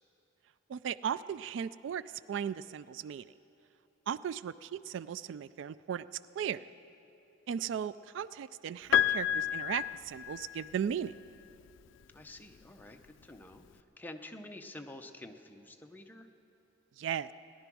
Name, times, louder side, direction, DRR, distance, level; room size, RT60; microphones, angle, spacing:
voice 1, 0.7-2.0 2.3-3.3 4.1-6.1 6.4-6.7 7.5-11.1 17.0-17.3, right 8 dB, 75° right, 16 dB, 0.3 m, -36 dB
Piano, 8.9-10.9 12.2-12.3, left 10 dB, 80° left, 0.3 m, -30 dB
voice 2, 12.1-16.3, left 1 dB, 10° left, 5 dB, 0.7 m, -49 dB
18.0 x 11.0 x 6.1 m, 2.8 s
head